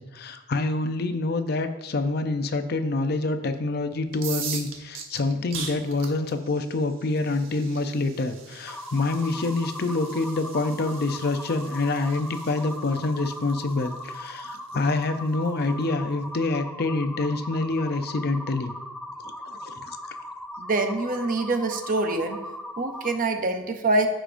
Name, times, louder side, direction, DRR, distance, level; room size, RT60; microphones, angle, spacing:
voice 1, 0.0-18.7 19.2-20.0, left 2 dB, 50° left, 8 dB, 0.5 m, -27 dB
sound 1, 4.1-15.8, right 6 dB, 85° right, 1.0 m, -41 dB
sound 2, 8.7-23.2, left 1 dB, 5° left, 0.4 m, -39 dB
voice 2, 20.6-22.4 22.8-24.1, right 2 dB, 45° right, 6 dB, 0.7 m, -25 dB
14.0 x 5.0 x 2.6 m, 1.1 s
head